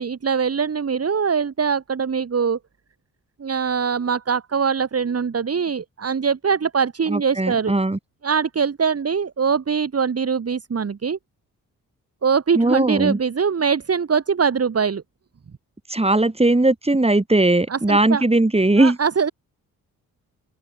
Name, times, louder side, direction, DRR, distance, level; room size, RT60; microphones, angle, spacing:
voice 1, 0.0-2.6 3.4-7.7 8.2-11.2 12.2-15.0 17.7-18.2 18.8-19.3, right 6 dB, 40° right, 2.4 m, -22 dB
voice 2, 7.1-8.0 12.5-13.2 15.9-19.0, right 2 dB, 15° right, 7.7 m, -18 dB
open air
cardioid pair, 65°, 36 cm